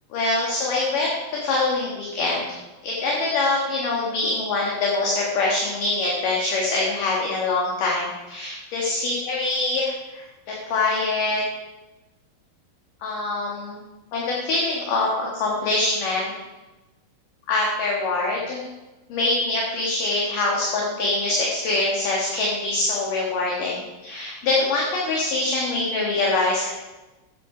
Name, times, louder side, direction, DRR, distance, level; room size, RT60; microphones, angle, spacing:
voice 1, 0.1-1.2 1.4-2.6 2.8-11.4 13.0-13.8 14.1-16.3 17.5-18.7 19.1-26.7, left 2 dB, 55° left, -3 dB, 2.6 m, -24 dB
15.0 x 10.5 x 5.0 m, 1.1 s
omnidirectional pair, 5.6 m